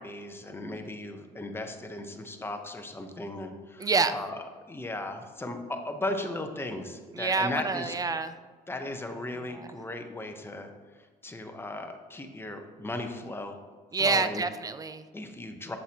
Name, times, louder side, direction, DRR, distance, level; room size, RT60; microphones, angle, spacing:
voice 1, 0.0-4.4 4.7-7.9 8.7-10.7 11.2-13.6 14.0-14.4 15.1-15.8, left 2 dB, 15° left, 5 dB, 0.8 m, -36 dB
voice 2, 3.8-4.1 7.1-8.4 9.5-9.7 13.9-15.1, right 4 dB, 20° right, 11 dB, 0.4 m, -27 dB
7.8 x 7.7 x 2.9 m, 1.5 s
cardioid pair, 110°, 17 cm